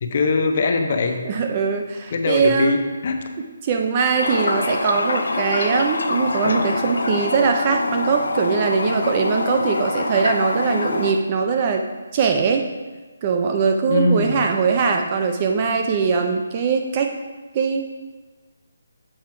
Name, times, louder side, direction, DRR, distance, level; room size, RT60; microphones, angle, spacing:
voice 1, 0.0-1.2 2.1-3.2 13.9-14.5, left 3 dB, 30° left, 5 dB, 0.6 m, -21 dB
voice 2, 1.3-2.8 3.6-11.8 12.1-12.6 13.2-17.1 17.5-17.9, right 5 dB, 20° right, 4 dB, 0.3 m, -21 dB
Toilet flush, 4.2-11.1, left 3 dB, 85° left, 0.6 m, -25 dB
7.5 x 4.8 x 4.4 m, 1.3 s
hypercardioid pair, 180°, 0 cm